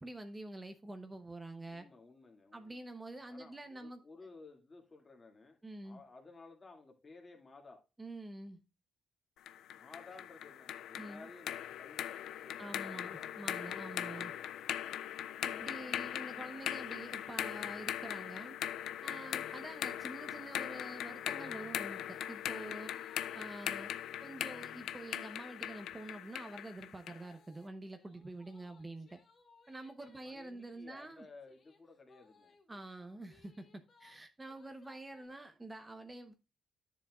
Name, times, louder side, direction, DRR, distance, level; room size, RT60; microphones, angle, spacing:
voice 1, 0.0-1.9 2.5-4.0 5.6-6.0 8.0-8.6 11.0-11.3 12.6-14.3 15.4-18.6 19.0-22.9 23.3-23.9 24.2-29.2 29.7-31.2 32.7-36.3, right 2 dB, 15° right, 0.9 m, -47 dB
voice 2, 1.7-2.9 3.3-5.6 5.8-7.8 9.7-13.3 14.0-14.3 30.1-32.5, left 3 dB, 30° left, 2.2 m, -56 dB
sound 1, 9.5-27.3, left 11 dB, 80° left, 0.4 m, -40 dB
sound 2, 19.0-25.9 27.2-34.2 34.5-35.3, left 4 dB, 45° left, 2.2 m, -65 dB
10.5 x 7.1 x 2.4 m
cardioid pair, 90°, 0 cm